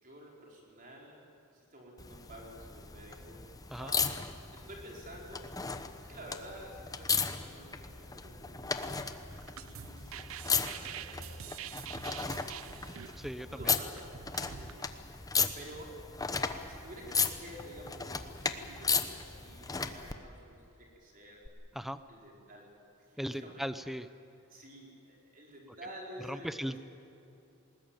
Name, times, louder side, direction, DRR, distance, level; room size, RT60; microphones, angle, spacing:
voice 1, 0.0-3.4 3.8-4.2 4.5-5.5 6.0-8.9 9.2-12.8 13.5-15.3 15.5-16.0 16.7-21.4 22.1-22.7 23.0-23.7 24.5-26.8, equal, 40° right, -2 dB, 4.7 m, -51 dB
sound 1, 2.0-20.1 21.4-21.5, left 5 dB, 15° left, 1.0 m, -36 dB
sound 2, 9.3-14.7, right 10 dB, 70° right, 0.6 m, -46 dB
voice 2, 13.2-13.7 15.3-15.5 21.7-22.0 23.2-24.1 26.3-26.8, equal, ahead, 12 dB, 0.6 m, -38 dB
20.5 x 19.5 x 9.1 m, 2.9 s
head